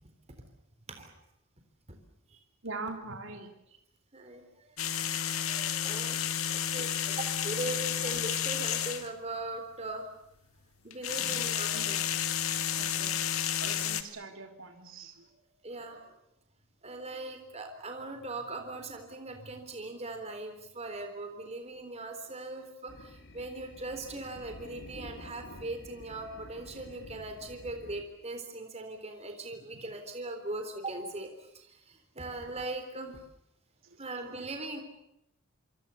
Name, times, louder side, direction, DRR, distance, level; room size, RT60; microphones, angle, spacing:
voice 1, 2.6-3.5 6.9-7.0 11.2-12.1 12.7-13.1 13.6-15.3 29.7-29.8 33.8-34.0, right 3 dB, 65° right, 4 dB, 3.6 m, -43 dB
voice 2, 4.1-6.4 6.7-10.1 10.8-12.0 13.0-13.1 15.6-16.1 16.8-31.3 31.5-33.2 34.0-34.8, right 2 dB, 30° right, 5 dB, 3.7 m, -40 dB
sound 1, 4.8-9.1 10.9-14.0, left 9 dB, 85° left, 2.0 m, -31 dB
sound 2, 22.9-28.0, left 1 dB, 60° left, 3.3 m, -49 dB
26.5 x 26.0 x 7.1 m, 0.81 s
head